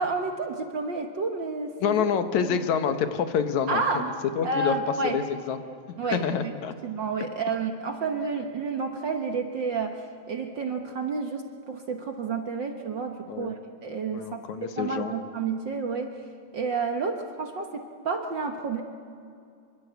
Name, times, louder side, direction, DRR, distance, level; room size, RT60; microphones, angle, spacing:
voice 1, 0.0-2.0 2.3-2.6 3.7-4.1 4.4-5.2 6.0-6.5 6.8-16.2 16.5-18.8, right 4 dB, 50° right, 5 dB, 1.5 m, -30 dB
voice 2, 1.8-3.8 4.4-4.8 5.0-5.6 6.1-6.7 13.3-13.5 14.1-15.1, left 7 dB, 75° left, 9 dB, 2.5 m, -27 dB
25.5 x 24.0 x 8.1 m, 2.4 s
omnidirectional pair, 3.3 m